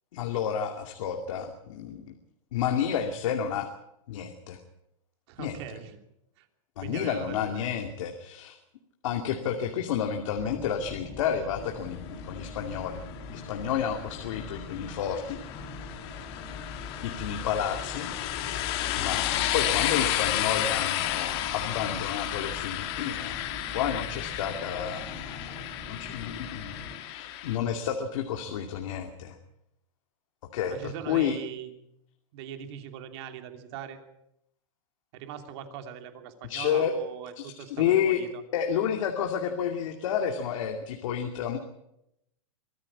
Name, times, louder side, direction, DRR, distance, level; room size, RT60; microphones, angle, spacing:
voice 1, 0.1-2.1 2.5-3.7 4.1-4.6 5.4-5.6 6.8-8.6 9.0-13.0 13.3-15.4 17.0-18.1 18.9-23.5 23.7-26.8 27.0-29.4 30.5-31.4 36.4-36.9 37.4-38.2 38.5-41.6, left 8 dB, 65° left, 4 dB, 2.5 m, -30 dB
voice 2, 5.3-6.0 6.4-6.5 6.8-7.6 30.7-31.7 32.3-34.0 35.1-38.4, right 9 dB, 50° right, 6 dB, 3.0 m, -41 dB
sound 1, 10.4-26.9, left 3 dB, 25° left, 4.7 m, -43 dB
sound 2, 12.6-27.6, left 13 dB, 45° left, 2.4 m, -32 dB
24.0 x 14.5 x 8.5 m, 0.82 s
supercardioid pair, 150°, 18 cm